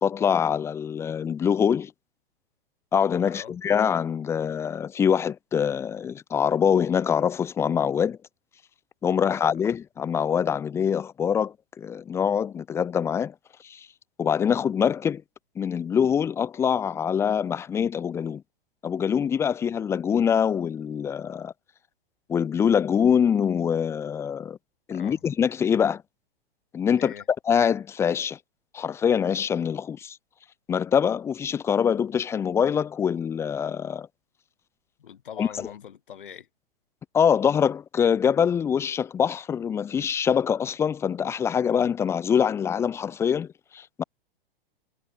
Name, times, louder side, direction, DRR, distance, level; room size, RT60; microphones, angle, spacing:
voice 1, 0.0-1.9 2.9-8.2 9.0-13.3 13.6-13.9 14.2-15.2 15.6-18.4 18.8-21.5 22.3-24.6 24.9-26.0 26.7-27.1 27.5-28.4 28.7-30.2 30.7-34.1 35.4-35.7 37.1-44.0, left 7 dB, 10° left, 0.5 m, -24 dB
voice 2, 3.2-3.6 9.1-9.6 24.9-25.2 27.0-27.2 35.0-36.5, left 9 dB, 60° left, 2.3 m, -43 dB
figure-of-eight pair, 110°, 29 cm